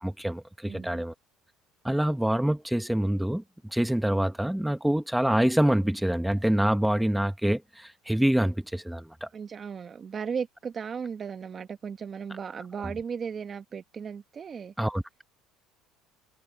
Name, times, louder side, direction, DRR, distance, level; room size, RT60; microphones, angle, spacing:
voice 1, 0.0-1.1 1.8-9.3 14.8-15.0, right 1 dB, 5° right, 0.9 m, -26 dB
voice 2, 0.6-1.0 9.3-14.7, right 6 dB, 30° right, 1.6 m, -36 dB
cardioid pair, 125°, 0 cm